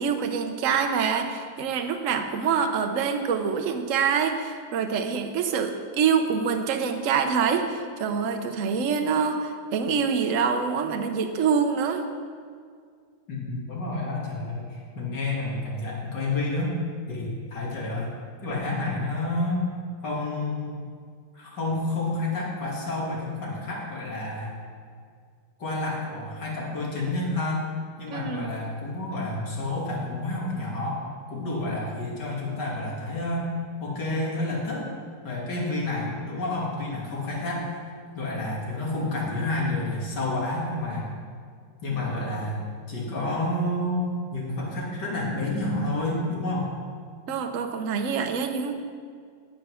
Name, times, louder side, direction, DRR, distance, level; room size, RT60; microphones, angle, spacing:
voice 1, 0.0-12.0 28.1-28.5 47.3-48.7, right 6 dB, 55° right, 6 dB, 0.9 m, -25 dB
voice 2, 13.3-16.7 17.1-18.1 18.4-19.7 20.0-20.8 21.3-24.5 25.6-27.7 28.0-31.0 31.3-33.5 33.8-34.8 35.2-37.7 38.1-41.1 41.8-42.6 42.9-46.7, left 2 dB, 50° left, -4 dB, 3.1 m, -29 dB
17.5 x 5.9 x 6.4 m, 2.1 s
omnidirectional pair, 2.4 m